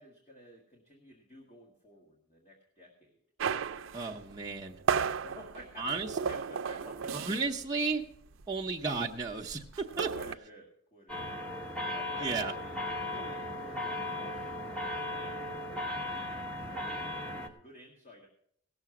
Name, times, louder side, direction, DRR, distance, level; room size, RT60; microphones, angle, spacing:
voice 1, 0.0-3.2 5.2-7.1 10.1-11.5 11.9-18.3, equal, 35° left, -1 dB, 1.7 m, -52 dB
sound 1, 3.4-7.7 7.9-8.2 8.4-10.4, right 6 dB, 80° right, 0.5 m, -34 dB
voice 2, 3.9-4.8 5.8-6.1 7.1-8.0 8.5-9.6 10.0-10.1 12.2-12.5, right 4 dB, 20° right, -2 dB, 0.8 m, -33 dB
sound 2, 11.1-17.5, left 1 dB, 5° left, 1.0 m, -37 dB
17.0 x 6.8 x 6.1 m, 0.67 s
head